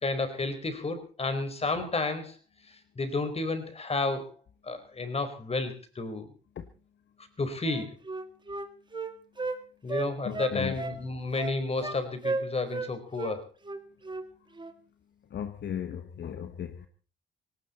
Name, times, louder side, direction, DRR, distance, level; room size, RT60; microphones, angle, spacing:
voice 1, 0.0-2.4 2.7-4.3 4.6-6.3 7.4-8.0 9.8-13.5, left 3 dB, 30° left, 4.5 m, -31 dB
Wind instrument woodwind instrument, 7.6-9.6 9.9-11.0 11.4-12.0 12.2-12.9 13.2-13.4 13.6-14.3 14.5-14.8, right 3 dB, 25° right, 2.0 m, -34 dB
voice 2, 10.2-10.8 15.3-16.9, left 9 dB, 60° left, 1.5 m, -36 dB
18.5 x 18.0 x 4.3 m
cardioid pair, 90°, 20 cm